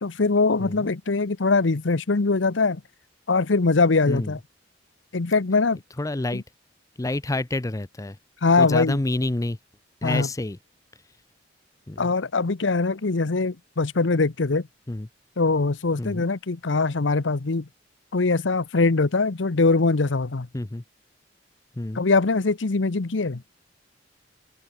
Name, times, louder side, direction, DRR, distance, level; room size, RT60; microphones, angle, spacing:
voice 1, 0.0-2.8 3.3-4.4 5.1-5.8 6.3-6.4 8.4-9.0 10.0-10.3 12.0-14.7 15.4-17.7 18.1-20.5 22.0-23.4, left 3 dB, 75° left, 0.9 m, -22 dB
voice 2, 0.6-0.9 4.1-4.4 6.0-6.4 7.0-8.2 8.6-9.6 10.0-10.6 11.9-12.1 14.9-15.1 16.0-16.3 20.5-20.8 21.8-22.1, left 2 dB, 20° left, 0.6 m, -28 dB
head